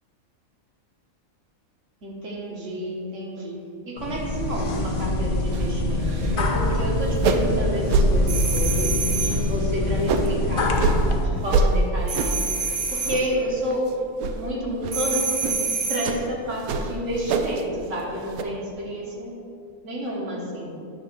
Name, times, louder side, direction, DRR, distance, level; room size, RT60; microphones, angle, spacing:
voice 1, 2.0-3.6 3.9-10.8 11.2-13.9 14.3-15.5 15.9-19.3 19.8-20.7, equal, 55° right, -2 dB, 1.7 m, -30 dB
sound 1, 4.0-11.3, left 2 dB, 45° left, 0.7 m, -25 dB
sound 2, 5.5-5.7 6.0-6.4 6.7-6.8 7.1-7.6 7.9-8.1 8.6-8.9 9.3-10.3 10.8-11.0 11.5-11.7 12.1-12.5 12.9-13.4 13.7-13.9 14.2-14.4 14.8-15.0 15.4-15.6 16.0-16.2 16.6-17.6 17.9-18.4, right 4 dB, 80° right, 1.1 m, -24 dB
sound 3, 8.3-9.5 12.1-13.3 14.9-16.2, right 4 dB, 35° right, 0.8 m, -27 dB
9.8 x 3.6 x 6.6 m, 2.6 s
omnidirectional pair, 1.5 m